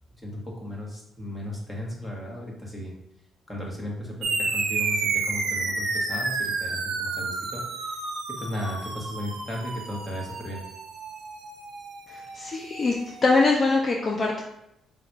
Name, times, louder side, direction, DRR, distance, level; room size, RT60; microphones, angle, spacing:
voice 1, 0.2-2.9 3.5-7.9 8.3-10.6, equal, 15° left, -2 dB, 1.3 m, -35 dB
sound 1, 4.2-13.1, right 3 dB, 75° right, 0.8 m, -31 dB
voice 2, 12.1-12.9 13.2-14.4, left 3 dB, 40° left, -1 dB, 0.6 m, -23 dB
3.9 x 2.5 x 4.6 m, 0.81 s
cardioid pair, 90°, 0 cm